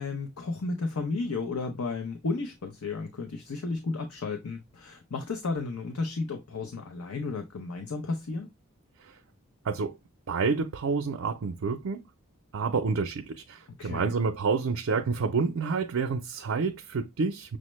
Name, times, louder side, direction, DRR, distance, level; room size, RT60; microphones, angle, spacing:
voice 1, 0.0-8.5 13.8-14.1, left 3 dB, 90° left, 0.6 m, -33 dB
voice 2, 9.6-10.0 10.3-12.0 12.5-17.6, right 4 dB, 75° right, 0.5 m, -29 dB
6.2 x 2.1 x 3.0 m
head